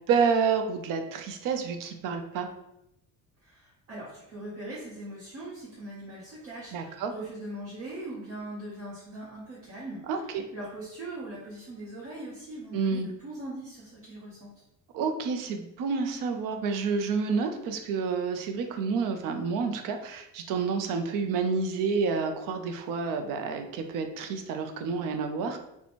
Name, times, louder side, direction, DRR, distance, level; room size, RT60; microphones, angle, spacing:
voice 1, 0.1-2.5 6.7-7.1 10.1-10.4 12.7-13.1 14.9-25.6, right 5 dB, 80° right, 5 dB, 0.5 m, -29 dB
voice 2, 3.4-14.5, right 1 dB, 45° right, -7 dB, 0.9 m, -41 dB
2.9 x 2.2 x 4.2 m, 0.84 s
cardioid pair, 165°, 33 cm